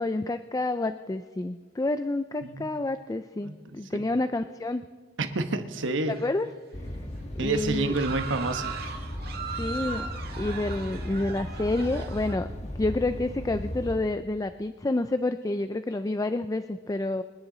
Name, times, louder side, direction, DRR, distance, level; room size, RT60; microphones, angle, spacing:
voice 1, 0.0-4.9 6.1-6.5 7.4-8.0 9.6-10.1 10.4-12.5 12.8-17.2, left 2 dB, 20° left, 10 dB, 0.4 m, -29 dB
voice 2, 5.2-6.1 7.4-8.7, right 3 dB, 70° right, 8 dB, 1.1 m, -28 dB
sound 1, 5.7-6.6 6.9-7.1 7.5-12.3, right 5 dB, 55° right, 1.7 m, -39 dB
sound 2, 6.7-14.0, left 1 dB, 35° left, 1.4 m, -36 dB
26.0 x 10.0 x 3.9 m, 1.5 s
head